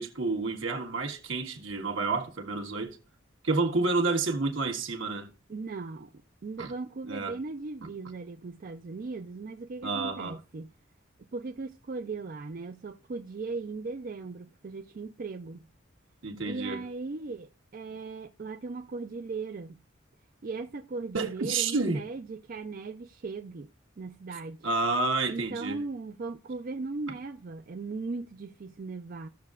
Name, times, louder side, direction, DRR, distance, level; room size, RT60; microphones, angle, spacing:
voice 1, 0.0-3.0 3.4-5.3 6.6-6.7 7.0-7.3 7.8-7.9 9.8-10.3 16.2-16.8 21.1-22.0 24.6-25.8, right 3 dB, 75° right, 1.4 m, -29 dB
voice 2, 5.5-6.1 6.4-10.7 11.3-15.6 16.4-19.8 20.4-23.7 24.0-24.7 25.3-29.3, right 3 dB, 45° right, 0.4 m, -38 dB
15.5 x 6.5 x 2.4 m
head